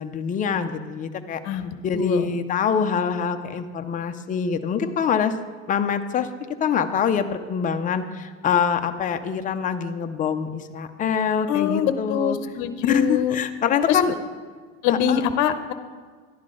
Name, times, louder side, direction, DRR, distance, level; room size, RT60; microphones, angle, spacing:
voice 1, 0.0-1.4 1.8-5.3 5.7-6.3 6.6-12.4 12.8-14.1 14.9-15.2, left 6 dB, 20° left, 7 dB, 0.5 m, -24 dB
voice 2, 1.4-2.3 11.5-13.4 13.9-14.0 14.8-15.7, left 9 dB, 50° left, 10 dB, 0.8 m, -24 dB
12.0 x 10.5 x 3.8 m, 1.6 s
cardioid pair, 150°, 37 cm